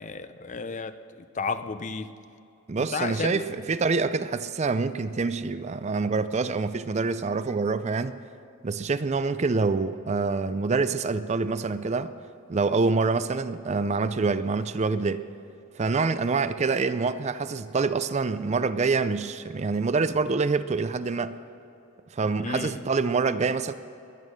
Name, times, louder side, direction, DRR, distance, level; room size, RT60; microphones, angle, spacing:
voice 1, 0.0-2.1 2.8-3.4 22.4-22.8, left 4 dB, 35° left, 11 dB, 0.6 m, -33 dB
voice 2, 2.7-8.2 8.6-12.1 12.5-15.2 15.8-21.4 22.1-23.7, right 4 dB, 30° right, 13 dB, 0.4 m, -26 dB
21.5 x 9.2 x 6.4 m, 2.7 s
head